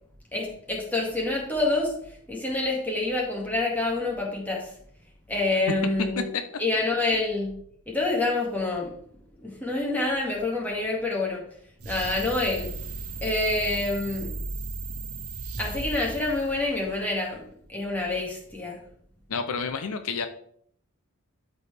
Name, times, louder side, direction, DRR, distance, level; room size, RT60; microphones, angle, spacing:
voice 1, 0.3-4.7 5.3-6.3 6.6-7.6 7.9-8.9 9.4-11.4 11.9-12.7 13.2-14.3 15.6-17.4 17.7-18.8, left 2 dB, 10° left, -3 dB, 2.1 m, -27 dB
sound 1, 11.8-17.2, right 3 dB, 75° right, 1.3 m, -36 dB
voice 2, 19.3-20.3, left 5 dB, 70° left, 8 dB, 0.6 m, -29 dB
12.0 x 4.6 x 3.4 m, 0.64 s
head